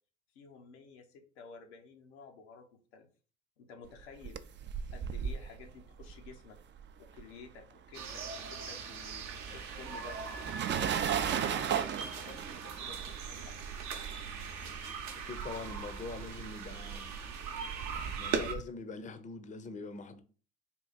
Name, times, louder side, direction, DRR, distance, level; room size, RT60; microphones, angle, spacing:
voice 1, 0.3-2.7 2.9-3.1 3.6-4.4 4.9-6.6 7.1-10.2 10.8-13.6, left 5 dB, 85° left, 0.8 m, -52 dB
sound 1, 4.0-7.6 7.9-18.6, right 8 dB, 35° right, 0.4 m, -38 dB
sound 2, 7.9-18.5, right 6 dB, 60° right, 0.7 m, -40 dB
voice 2, 15.2-17.1 18.2-20.2, left 4 dB, 25° left, 0.6 m, -43 dB
3.7 x 2.4 x 4.0 m
hypercardioid pair, 60°, 33 cm